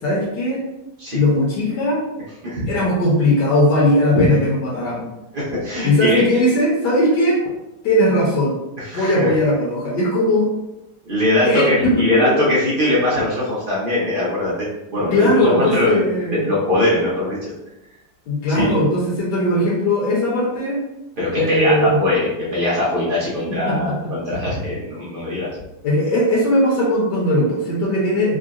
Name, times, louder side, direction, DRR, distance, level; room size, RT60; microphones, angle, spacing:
voice 1, 0.0-0.6 1.1-2.0 2.7-5.1 5.8-7.4 7.8-8.6 8.9-10.5 11.4-12.4 15.1-16.5 18.3-20.8 21.4-22.0 23.7-24.1 25.8-28.4, left 1 dB, 70° left, -5 dB, 1.3 m, -18 dB
voice 2, 5.3-6.2 8.8-9.3 11.1-16.0 16.3-17.4 18.5-18.8 21.2-25.5, left 1 dB, 60° right, -7 dB, 0.5 m, -21 dB
3.7 x 2.1 x 2.4 m, 0.92 s
omnidirectional pair, 2.0 m